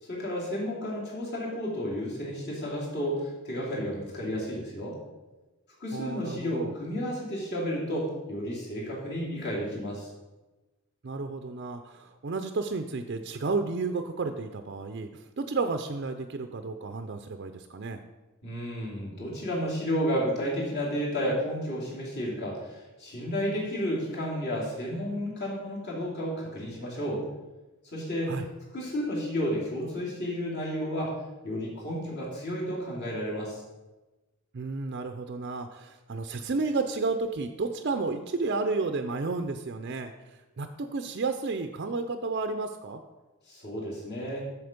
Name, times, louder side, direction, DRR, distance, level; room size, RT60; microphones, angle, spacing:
voice 1, 0.0-5.0 5.8-10.1 18.4-27.2 27.9-28.3 28.7-31.1 31.4-33.6 43.5-44.4, equal, 50° left, -4 dB, 2.8 m, -32 dB
voice 2, 5.9-6.7 11.0-18.0 28.3-28.4 34.5-43.0, right 3 dB, 50° right, 7 dB, 0.5 m, -32 dB
7.9 x 7.1 x 5.2 m, 1.1 s
head